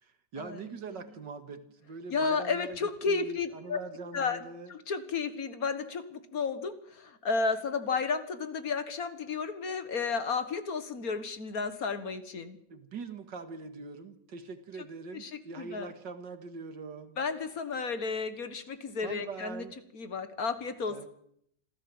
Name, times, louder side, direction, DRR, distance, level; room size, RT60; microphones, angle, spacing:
voice 1, 0.0-4.7 12.7-17.2 19.0-19.7 20.9-21.1, right 4 dB, 85° right, 9 dB, 2.5 m, -43 dB
voice 2, 2.1-3.8 4.1-4.4 4.7-12.6 15.1-15.3 15.6-15.9 17.2-19.7 19.9-21.1, left 4 dB, 55° left, 11 dB, 2.0 m, -32 dB
26.5 x 15.0 x 7.8 m, 0.70 s
omnidirectional pair, 1.9 m